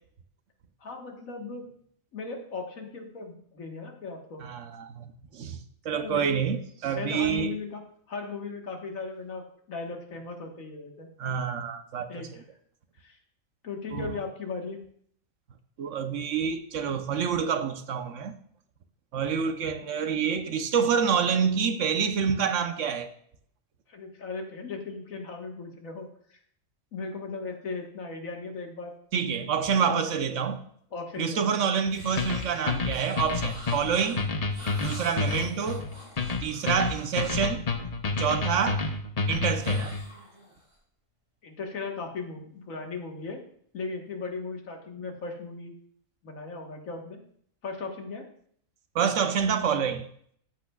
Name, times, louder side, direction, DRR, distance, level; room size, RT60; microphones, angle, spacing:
voice 1, 0.8-1.7 2.1-4.4 5.9-6.4 7.0-7.8 8.1-11.1 12.1-12.4 13.0-13.2 13.6-14.8 19.5-19.6 23.9-26.4 26.9-28.9 29.9-30.0 30.3-30.4 30.9-31.8 41.4-43.4 43.7-45.7 46.2-47.2 47.6-48.3, left 4 dB, 90° left, 1.9 m, -37 dB
voice 2, 4.4-5.6 5.8-7.6 11.2-12.3 13.9-14.1 15.8-18.3 19.1-23.1 29.1-30.6 31.2-34.2 34.8-35.9 36.4-37.6 38.2-38.9 39.3-40.0 48.9-50.1, right 7 dB, 70° right, 1.1 m, -27 dB
sound 1, 31.9-37.5 39.6-40.8, equal, 25° right, 4.2 m, -46 dB
sound 2, 32.2-40.1, left 4 dB, 35° left, 0.7 m, -29 dB
14.0 x 8.4 x 2.3 m
omnidirectional pair, 1.4 m